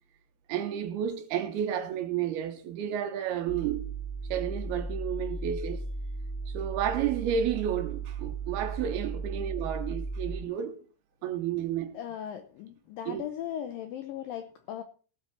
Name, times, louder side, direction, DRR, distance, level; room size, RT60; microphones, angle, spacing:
voice 1, 0.5-3.9 4.3-5.8 6.5-10.8 11.2-12.0 13.1-13.2, right 9 dB, 75° right, 2.8 m, -31 dB
sound 1, 3.5-10.4, right 3 dB, 50° left, 1.5 m, -36 dB
voice 2, 11.9-14.8, left 10 dB, 85° left, 2.0 m, -38 dB
17.5 x 8.0 x 4.2 m
omnidirectional pair, 5.0 m